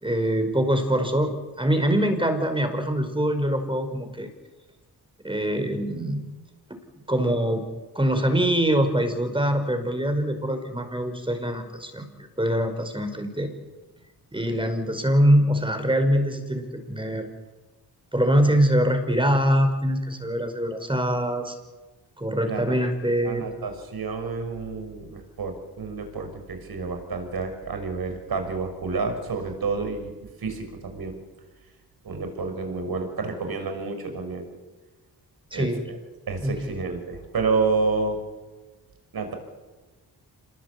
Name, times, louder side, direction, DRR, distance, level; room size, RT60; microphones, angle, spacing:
voice 1, 0.0-4.3 5.2-6.2 7.1-7.6 8.0-12.1 12.4-13.5 14.3-17.3 18.1-21.6 22.2-23.4 35.5-35.8 36.4-36.7, equal, 15° right, 7 dB, 5.2 m, -23 dB
voice 2, 22.4-22.8 23.2-31.2 32.0-34.5 35.5-36.0 36.3-38.2 39.1-39.3, right 4 dB, 65° right, 6 dB, 6.2 m, -29 dB
27.0 x 21.0 x 8.6 m, 1.2 s
cardioid pair, 75°, 40 cm